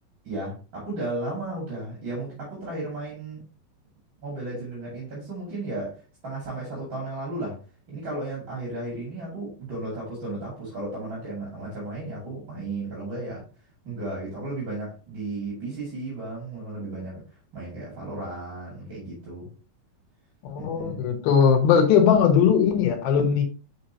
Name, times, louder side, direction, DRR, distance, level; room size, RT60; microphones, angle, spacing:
voice 1, 0.2-3.4 4.2-7.6 7.9-13.4 13.8-17.2 17.5-19.5 20.6-21.1, right 2 dB, 35° right, 2.8 m, -34 dB
voice 2, 20.5-23.4, left 7 dB, 85° left, 3.1 m, -19 dB
6.1 x 5.7 x 2.9 m
omnidirectional pair, 4.1 m